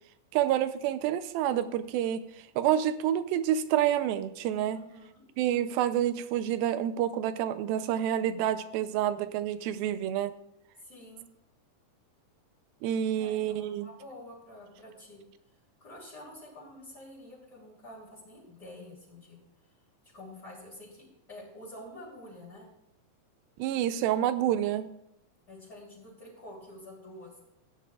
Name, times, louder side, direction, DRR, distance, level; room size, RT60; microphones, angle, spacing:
voice 1, 0.3-2.2 2.6-4.8 5.4-10.3 12.8-13.9 23.6-24.9, right 11 dB, 90° right, 12 dB, 2.5 m, -28 dB
voice 2, 4.7-5.3 10.8-11.3 13.2-15.2 15.8-19.4 20.1-22.7 25.5-27.3, left 1 dB, 30° left, -9 dB, 3.5 m, -48 dB
16.5 x 10.0 x 2.4 m, 0.81 s
omnidirectional pair, 4.1 m